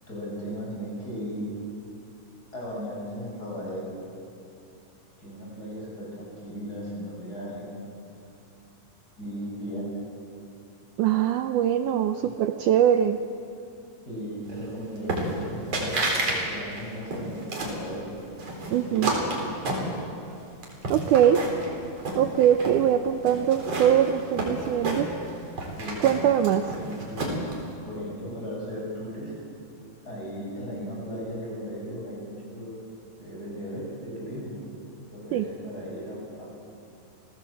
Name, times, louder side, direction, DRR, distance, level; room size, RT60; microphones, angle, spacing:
voice 1, 0.1-1.4 2.5-4.0 5.2-7.8 9.2-9.9 14.1-18.1 18.5-19.4 25.8-26.1 26.7-27.2 27.8-29.3 30.0-32.8 33.2-34.6 35.1-36.6, equal, 25° left, -4 dB, 8.2 m, -36 dB
voice 2, 11.0-13.2 18.7-19.1 20.9-21.4 22.2-25.1 26.0-26.7 35.3-35.5, right 10 dB, 85° right, 8 dB, 1.8 m, -22 dB
sound 1, 15.1-15.5 15.7-16.4 16.7-17.8 18.4-20.3 20.6-21.7 22.0-22.8 23.3-25.3 25.6-27.5, right 2 dB, 40° right, 4.7 m, -29 dB
29.0 x 18.0 x 7.7 m, 2.6 s
omnidirectional pair, 4.5 m